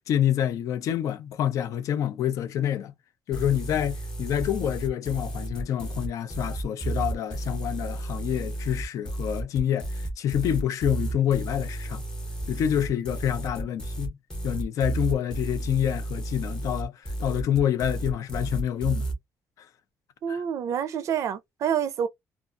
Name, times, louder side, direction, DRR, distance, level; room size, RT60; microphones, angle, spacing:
voice 1, 0.0-2.9 3.3-12.0 12.5-14.2 14.4-19.1 19.6-19.7 20.3-20.4, left 10 dB, 60° left, 0.4 m, -27 dB
sound 1, 3.3-19.1, right 2 dB, 15° left, 0.8 m, -32 dB
voice 2, 20.2-22.1, right 8 dB, 55° right, 0.4 m, -27 dB
2.5 x 2.3 x 2.4 m
cardioid pair, 170°, 6 cm